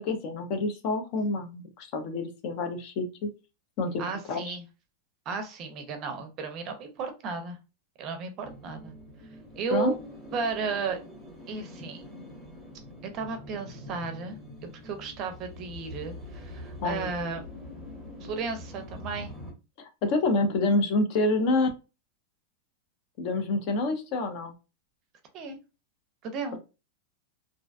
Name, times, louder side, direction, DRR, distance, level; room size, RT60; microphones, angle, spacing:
voice 1, 0.0-3.3 3.8-4.6 9.7-9.9 16.8-17.1 19.8-21.7 23.2-24.5 26.5-26.6, left 2 dB, 45° left, 6 dB, 0.5 m, -27 dB
voice 2, 4.0-4.6 5.3-7.6 8.0-8.9 9.6-10.0 10.3-11.0 11.5-12.0 13.0-14.4 14.8-17.4 18.2-19.3 25.3-25.6 26.2-26.6, right 4 dB, 35° right, 7 dB, 0.5 m, -34 dB
sound 1, 8.4-19.5, left 1 dB, 5° right, 0.9 m, -44 dB
2.5 x 2.2 x 2.4 m, 0.29 s
supercardioid pair, 150°, 0 cm